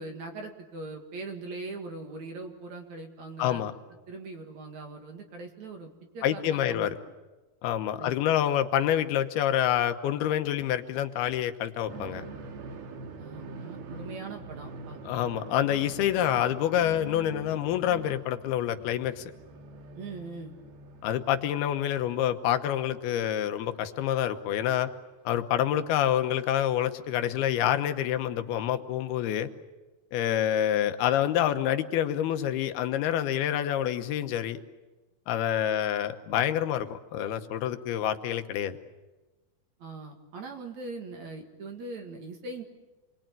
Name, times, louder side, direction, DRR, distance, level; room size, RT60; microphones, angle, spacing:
voice 1, 0.0-3.7 4.1-6.9 8.0-8.4 13.2-15.0 19.9-20.6 39.8-42.6, right 3 dB, 55° right, 4 dB, 3.0 m, -41 dB
voice 2, 3.4-3.7 6.2-7.0 7.6-12.2 15.1-19.3 21.0-24.9 25.3-29.5 30.1-34.6 35.3-38.8, left 11 dB, 85° left, 8 dB, 3.1 m, -27 dB
sound 1, 11.9-22.9 23.2-23.3 24.5-24.6 26.1-26.2 27.7-27.8, right 3 dB, 75° right, 3.8 m, -44 dB
27.5 x 22.0 x 9.1 m, 1.2 s
omnidirectional pair, 4.4 m